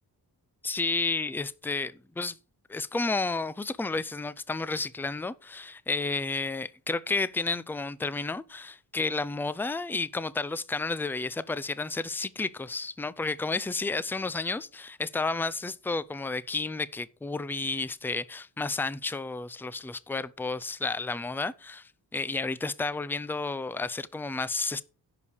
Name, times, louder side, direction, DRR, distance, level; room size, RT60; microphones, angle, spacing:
voice 1, 0.6-2.4 2.7-24.8, left 3 dB, 5° left, 0.4 m, -31 dB
11.0 x 4.8 x 6.9 m
wide cardioid pair, 145°, 41 cm